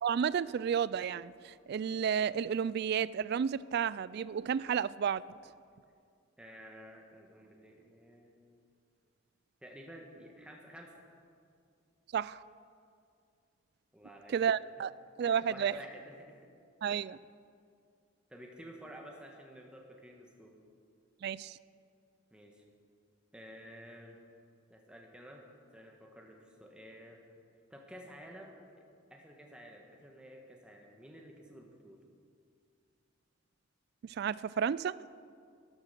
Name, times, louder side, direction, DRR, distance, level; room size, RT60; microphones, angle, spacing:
voice 1, 0.0-5.2 12.1-12.4 14.3-14.9 15.2-15.7 16.8-17.2 21.2-21.6 34.0-34.9, right 7 dB, 55° right, 19 dB, 0.3 m, -32 dB
voice 2, 6.4-8.4 9.6-11.0 13.9-14.4 15.2-16.5 18.3-20.5 22.3-22.7 23.3-24.2 24.7-25.4 25.7-27.2 27.7-28.8 29.1-32.0, equal, 5° right, 1 dB, 1.3 m, -51 dB
12.5 x 12.5 x 6.7 m, 2.3 s
head